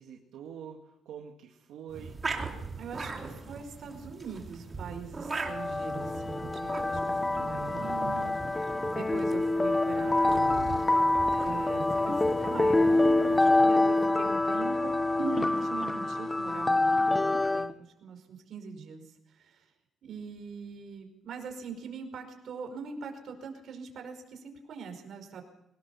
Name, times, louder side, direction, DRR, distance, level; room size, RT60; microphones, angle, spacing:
voice 1, 0.0-2.2 7.2-7.6, right 8 dB, 85° right, 1 dB, 2.2 m, -46 dB
sound 1, 1.9-13.6, right 4 dB, 25° right, 3.1 m, -41 dB
voice 2, 2.7-10.8 11.3-17.7 18.0-19.0 19.3-19.6 20.0-25.4, right 5 dB, 60° right, 4 dB, 5.0 m, -42 dB
sound 2, 5.4-17.7, left 2 dB, 15° left, 0.8 m, -26 dB
23.5 x 18.5 x 7.1 m, 0.83 s
cardioid pair, 120°, 0 cm